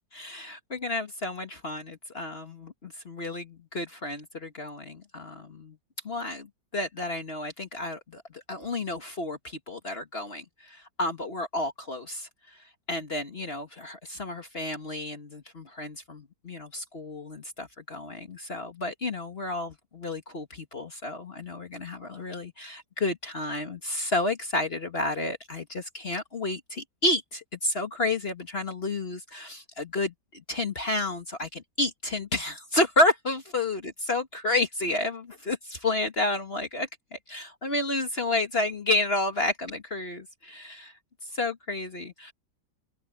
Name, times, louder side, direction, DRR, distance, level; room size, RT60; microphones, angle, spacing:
voice 1, 0.1-5.8 6.0-12.3 12.9-40.9 41.3-42.3, left 2 dB, 35° left, 1.7 m, -31 dB
open air
omnidirectional pair, 1.9 m